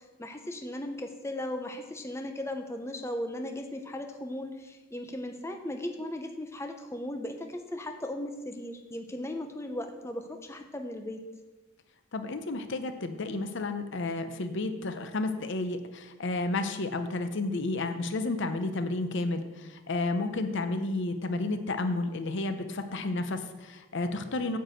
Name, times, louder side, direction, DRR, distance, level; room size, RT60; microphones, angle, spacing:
voice 1, 0.0-11.2, left 1 dB, 15° left, 5 dB, 0.7 m, -37 dB
voice 2, 12.1-24.6, left 2 dB, 60° left, 8 dB, 0.7 m, -31 dB
9.1 x 4.7 x 7.7 m, 1.2 s
head